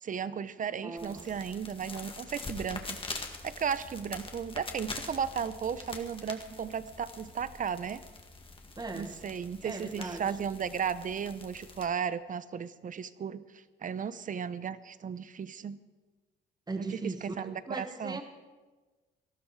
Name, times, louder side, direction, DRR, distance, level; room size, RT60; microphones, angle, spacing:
voice 1, 0.0-3.0 3.4-8.0 8.9-15.8 16.8-18.2, right 7 dB, 40° right, 15 dB, 0.7 m, -35 dB
voice 2, 0.8-1.3 8.8-9.1 9.6-10.2 16.7-18.2, right 3 dB, 20° right, 6 dB, 1.4 m, -38 dB
sound 1, 1.0-11.9, left 3 dB, 25° left, 1.9 m, -44 dB
18.5 x 13.0 x 4.7 m, 1.3 s
cardioid pair, 90°, 20 cm